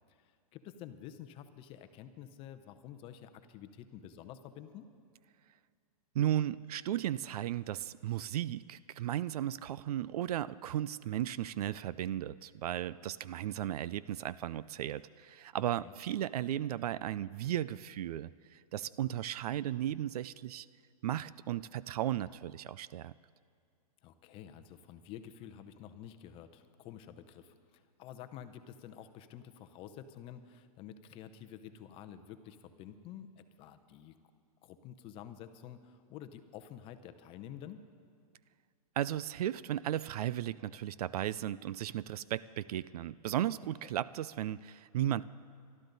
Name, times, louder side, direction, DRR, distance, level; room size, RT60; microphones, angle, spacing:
voice 1, 0.1-4.9 15.5-15.9 24.0-34.1 34.6-37.8 43.8-43.9, left 10 dB, 25° left, 10 dB, 0.7 m, -50 dB
voice 2, 6.1-20.7 21.0-23.1 39.0-45.2, right 12 dB, 70° right, 19 dB, 0.4 m, -35 dB
24.5 x 12.0 x 4.0 m, 2.2 s
hypercardioid pair, 145°, 20 cm